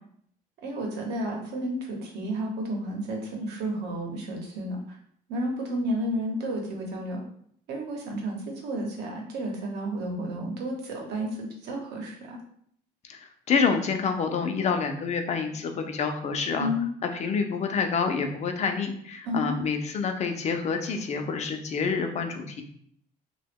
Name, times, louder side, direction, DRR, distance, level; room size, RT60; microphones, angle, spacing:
voice 1, 0.6-5.0 5.3-7.2 7.7-12.4 16.6-16.9 19.2-19.6, equal, 80° right, 1 dB, 0.9 m, -31 dB
voice 2, 13.1-16.7 17.0-22.6, left 5 dB, 40° left, 6 dB, 0.5 m, -28 dB
2.8 x 2.2 x 3.4 m, 0.64 s
cardioid pair, 110°, 17 cm